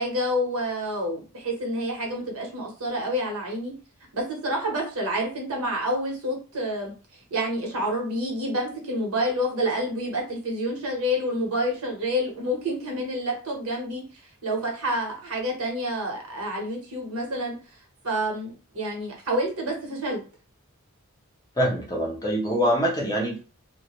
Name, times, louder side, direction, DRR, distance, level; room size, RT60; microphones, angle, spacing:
voice 1, 0.0-3.7 4.1-6.9 7.3-17.8 18.0-20.2, equal, 75° right, 0 dB, 1.0 m, -28 dB
voice 2, 21.6-23.4, equal, 15° left, -2 dB, 0.6 m, -24 dB
2.2 x 2.1 x 2.9 m, 0.36 s
head